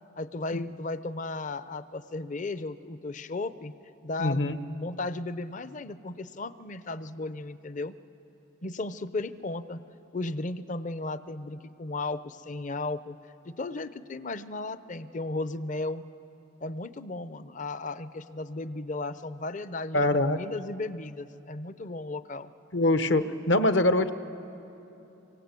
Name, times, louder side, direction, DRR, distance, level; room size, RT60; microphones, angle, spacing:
voice 1, 0.2-3.7 4.0-8.0 8.6-9.8 10.1-13.2 13.4-16.0 16.6-22.5, left 2 dB, 40° left, 14 dB, 0.6 m, -35 dB
voice 2, 4.2-4.5 19.9-20.4 22.7-24.1, left 1 dB, 65° left, 10 dB, 1.0 m, -23 dB
25.5 x 24.0 x 8.3 m, 3.0 s
head